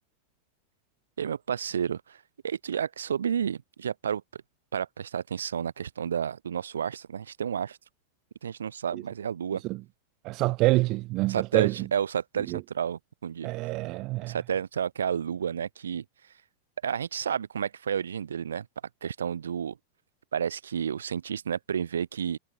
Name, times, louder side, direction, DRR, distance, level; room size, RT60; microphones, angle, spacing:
voice 1, 1.2-4.2 4.7-7.8 8.4-9.6 11.3-13.5 14.3-16.0 16.8-18.7 19.0-19.8 20.3-22.4, right 8 dB, 70° right, 2.3 m, -31 dB
voice 2, 10.2-11.9 12.5-12.6 13.4-14.4, right 21 dB, 40° right, 0.5 m, -26 dB
figure-of-eight pair, 90°, 0 cm